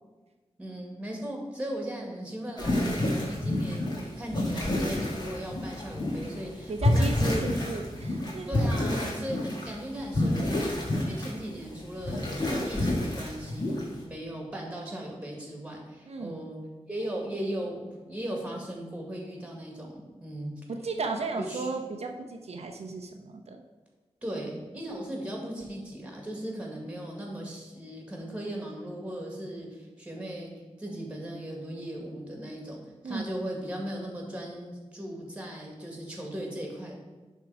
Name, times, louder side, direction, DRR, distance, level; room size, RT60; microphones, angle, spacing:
voice 1, 0.6-7.5 8.5-16.6 16.9-20.5 21.4-21.7 24.2-30.5 30.8-37.0, right 1 dB, 10° right, 0 dB, 1.8 m, -37 dB
sound 1, 2.6-14.0, left 1 dB, 40° left, 1.8 m, -29 dB
voice 2, 6.7-8.5 16.0-16.3 20.7-23.6 33.0-33.2, right 3 dB, 70° right, 3 dB, 0.7 m, -35 dB
10.5 x 3.7 x 4.8 m, 1.2 s
wide cardioid pair, 115°, 11 cm